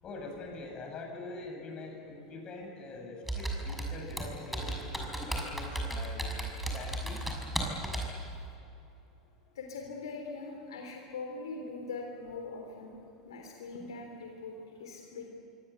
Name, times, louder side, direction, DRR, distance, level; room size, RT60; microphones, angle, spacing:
voice 1, 0.0-6.3 6.7-7.3, left 3 dB, 35° left, 2 dB, 7.8 m, -44 dB
Computer keyboard, 3.3-8.2, right 1 dB, ahead, 6.2 m, -35 dB
voice 2, 9.6-12.9 13.3-15.3, left 3 dB, 70° left, 2 dB, 3.4 m, -42 dB
26.5 x 24.5 x 8.1 m, 2.9 s
figure-of-eight pair, 80°, 3 cm